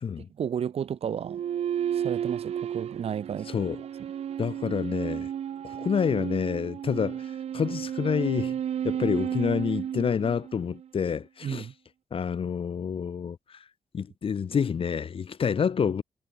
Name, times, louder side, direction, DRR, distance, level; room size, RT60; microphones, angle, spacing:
voice 1, 0.4-1.4 1.9-3.5 11.4-11.7, right 8 dB, 70° right, 1.2 m, -32 dB
sound 1, 1.2-10.9, right 9 dB, 85° right, 4.7 m, -32 dB
voice 2, 3.5-3.8 4.4-5.3 5.6-8.6 8.8-11.7 12.1-13.6 13.9-16.0, left 7 dB, 60° left, 1.5 m, -28 dB
cardioid pair, 80°, 11 cm